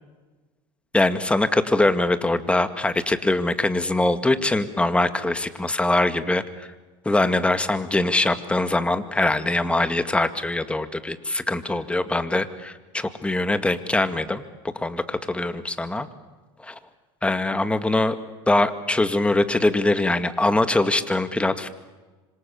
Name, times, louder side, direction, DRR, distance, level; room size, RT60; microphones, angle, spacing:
voice 1, 0.9-6.7 7.1-16.1 16.6-16.8 17.2-18.2 18.5-21.7, left 2 dB, 10° left, 10 dB, 2.1 m, -23 dB
26.5 x 26.0 x 7.2 m, 1.2 s
supercardioid pair, 105°, 13 cm